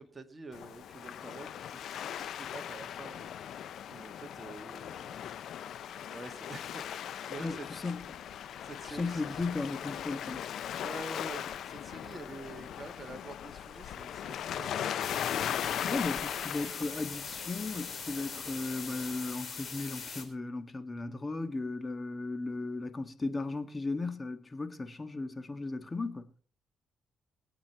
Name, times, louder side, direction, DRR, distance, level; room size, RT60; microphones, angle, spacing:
voice 1, 0.0-3.3 3.9-5.3 6.1-7.7 8.6-9.2 10.8-15.6, right 2 dB, 25° right, 1.9 m, -47 dB
Waves surf, 0.5-19.3, left 9 dB, 70° left, 0.6 m, -39 dB
voice 2, 7.4-8.0 8.9-10.4 15.9-26.3, left 3 dB, 25° left, 1.6 m, -36 dB
sound 1, 15.0-20.2, left 5 dB, 45° left, 4.0 m, -42 dB
22.0 x 8.8 x 4.5 m
cardioid pair, 90°, 0 cm